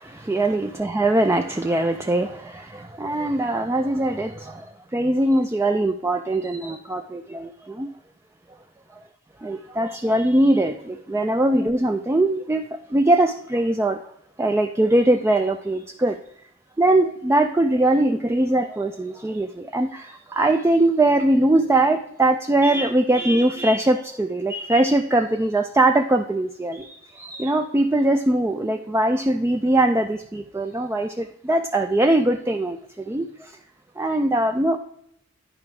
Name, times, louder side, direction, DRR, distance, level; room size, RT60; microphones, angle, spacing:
voice 1, 0.0-7.9 9.4-14.0 14.4-16.2 16.8-33.6 34.0-34.8, right 1 dB, 10° right, 5 dB, 0.3 m, -21 dB
10.5 x 4.8 x 4.8 m, 0.72 s
head